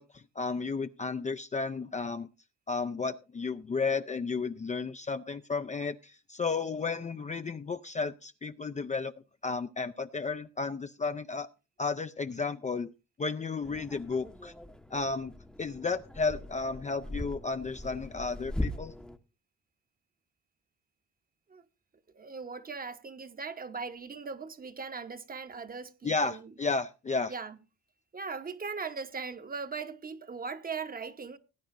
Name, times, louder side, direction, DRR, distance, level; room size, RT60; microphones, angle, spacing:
voice 1, 0.0-2.3 2.7-9.1 9.4-11.5 11.8-12.9 13.2-14.5 14.9-15.3 15.6-18.9 26.0-27.3, left 4 dB, 25° left, 0.5 m, -33 dB
sound 1, 13.6-19.2, left 1 dB, 5° left, 0.8 m, -40 dB
voice 2, 22.1-26.5 27.3-27.6 28.1-31.4, right 5 dB, 30° right, 1.0 m, -39 dB
19.0 x 9.1 x 2.5 m
cardioid pair, 90°, 30 cm